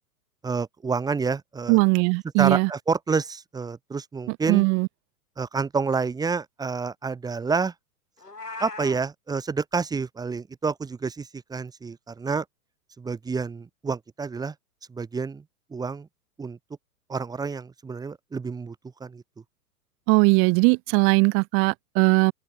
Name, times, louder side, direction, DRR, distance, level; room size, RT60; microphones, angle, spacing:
voice 1, 0.4-1.8 2.4-4.6 5.4-7.7 8.6-12.4 13.0-14.5 14.9-15.4 15.7-16.1 16.4-16.6 17.1-18.7 19.0-19.2, right 4 dB, 10° right, 1.2 m, -28 dB
voice 2, 1.7-2.7 4.3-4.9 20.1-22.3, right 32 dB, 30° right, 1.0 m, -20 dB
Meow, 8.2-9.0, left 3 dB, 85° left, 3.4 m, -37 dB
open air
figure-of-eight pair, 105°, 47 cm